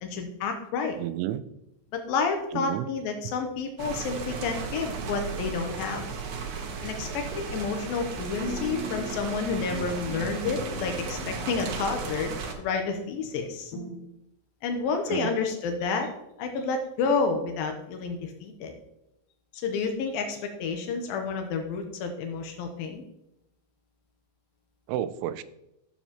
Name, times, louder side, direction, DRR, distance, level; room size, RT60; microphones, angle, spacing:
voice 1, 0.0-1.0 1.9-6.0 6.8-13.7 14.6-16.1 16.4-18.7 19.6-23.0, left 4 dB, 85° left, 4 dB, 2.0 m, -30 dB
voice 2, 1.0-1.4 2.5-2.9 15.1-15.4 24.9-25.4, right 12 dB, 85° right, 14 dB, 3.0 m, -31 dB
sound 1, 3.8-12.5, right 5 dB, 70° right, 2.1 m, -35 dB
sound 2, 8.5-9.4 9.7-13.3 13.7-14.0, left 1 dB, 60° left, 2.6 m, -40 dB
14.0 x 7.1 x 2.9 m, 0.86 s
omnidirectional pair, 5.4 m